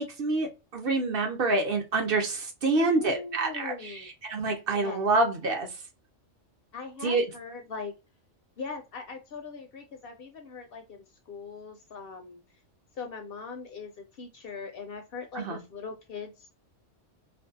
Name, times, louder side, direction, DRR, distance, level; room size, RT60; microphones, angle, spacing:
voice 1, 0.0-5.7 7.0-7.2 15.3-15.6, right 3 dB, 55° right, 2 dB, 0.8 m, -27 dB
voice 2, 2.7-4.1 4.7-5.1 6.7-7.9 8.6-12.4 12.9-16.5, left 4 dB, 60° left, 4 dB, 0.6 m, -40 dB
2.5 x 2.2 x 2.6 m, 0.29 s
omnidirectional pair, 1.3 m